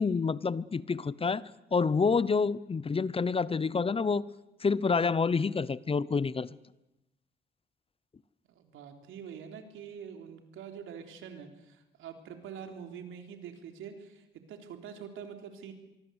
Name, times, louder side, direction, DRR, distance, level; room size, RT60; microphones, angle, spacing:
voice 1, 0.0-4.2 4.6-6.6, left 5 dB, 30° left, 20 dB, 0.8 m, -28 dB
voice 2, 8.5-14.2 14.5-15.7, right 7 dB, 85° right, 6 dB, 3.7 m, -45 dB
24.5 x 23.5 x 8.2 m, 0.92 s
cardioid pair, 90°, 20 cm